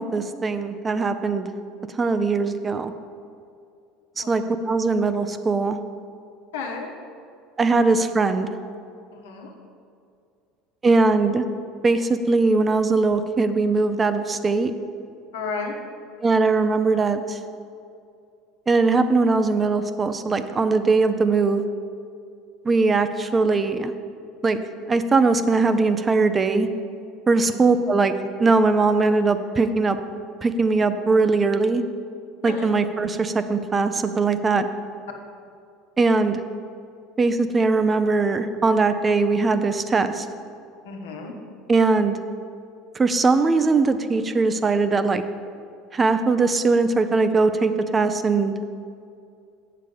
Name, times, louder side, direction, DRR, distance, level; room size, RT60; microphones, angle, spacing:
voice 1, 0.0-1.5 2.0-2.9 4.2-5.8 7.6-8.5 10.8-11.5 11.8-14.7 16.2-17.2 18.7-21.6 22.7-23.9 24.4-24.6 24.9-26.7 27.3-28.1 28.4-30.0 30.4-31.8 32.4-34.6 36.0-36.4 37.2-40.2 41.7-42.2 43.0-45.2 45.9-48.6, right 3 dB, 25° right, 10 dB, 0.5 m, -20 dB
voice 2, 6.5-6.9 9.1-9.5 15.3-15.7 27.4-27.5 32.4-32.7 40.8-41.3, left 4 dB, 80° left, 1 dB, 1.2 m, -32 dB
7.6 x 6.6 x 5.2 m, 2.4 s
hypercardioid pair, 80°, 0 cm